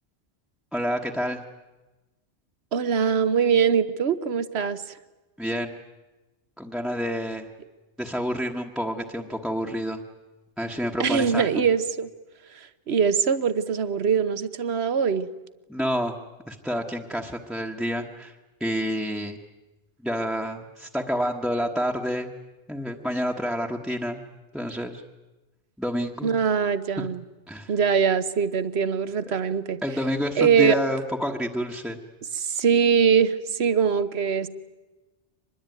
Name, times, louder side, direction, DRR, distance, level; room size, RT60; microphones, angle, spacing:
voice 1, 0.7-1.4 5.4-5.7 6.6-7.5 8.0-10.0 10.6-11.5 15.7-16.2 16.5-18.3 18.6-19.4 20.0-22.3 22.7-24.2 24.5-25.0 25.8-26.3 27.0-27.1 27.5-27.7 29.3-29.4 29.8-32.0, equal, ahead, 0 dB, 1.2 m, -28 dB
voice 2, 2.7-5.0 11.0-12.1 12.5-15.3 26.2-27.2 27.7-29.8 30.4-30.8 32.3-34.5, right 7 dB, 70° right, 14 dB, 1.3 m, -22 dB
25.0 x 21.0 x 9.3 m, 1.1 s
omnidirectional pair, 1.1 m